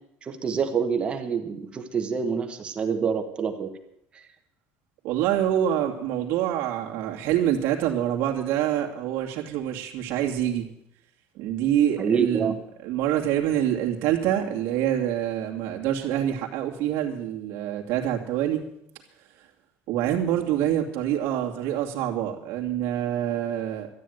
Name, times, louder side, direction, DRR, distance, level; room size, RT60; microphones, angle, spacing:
voice 1, 0.2-3.7 4.1-4.2 12.0-12.5, right 6 dB, 25° right, 6 dB, 1.2 m, -26 dB
voice 2, 5.0-10.7 11.4-12.6 12.8-18.6 19.9-23.9, right 11 dB, 60° right, 0 dB, 2.5 m, -26 dB
13.0 x 9.6 x 9.3 m, 0.77 s
cardioid pair, 180°, 5 cm